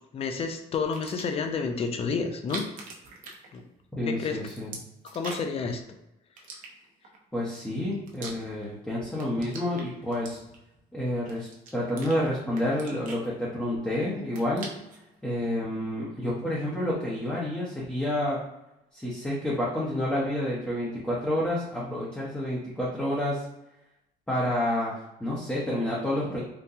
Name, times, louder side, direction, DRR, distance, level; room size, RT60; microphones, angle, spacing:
voice 1, 0.1-2.6 3.5-3.6 4.0-4.4 5.0-5.8, left 5 dB, 35° left, 5 dB, 0.5 m, -30 dB
sound 1, 0.8-1.5 2.3-4.0 4.2-5.6 6.4-7.2 7.7-8.8 9.1-10.8 11.3-12.2 12.5-13.8 14.1-15.0, right 3 dB, 55° right, 0.8 m, -43 dB
voice 2, 4.0-4.7 7.3-10.4 10.9-14.7 15.2-18.4 18.9-23.4 24.3-26.4, left 1 dB, 5° left, -6 dB, 0.8 m, -29 dB
3.8 x 2.2 x 2.7 m, 0.90 s
cardioid pair, 110°, 17 cm